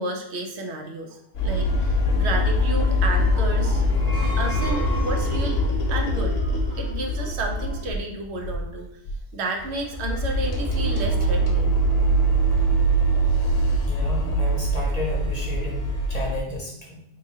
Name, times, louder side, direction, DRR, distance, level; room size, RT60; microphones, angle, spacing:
voice 1, 0.0-4.0 4.4-6.4 6.7-8.9 9.3-11.7, right 2 dB, 75° right, 2 dB, 0.9 m, -31 dB
sound 1, 1.3-8.1 8.4-8.7 9.1-9.2 9.6-16.4, right 1 dB, 65° left, 0.9 m, -23 dB
sound 2, 3.9-5.7, left 2 dB, 20° right, 1.5 m, -35 dB
voice 2, 13.8-17.0, left 2 dB, 45° left, -3 dB, 0.7 m, -33 dB
3.7 x 3.0 x 2.7 m, 0.77 s
omnidirectional pair, 1.2 m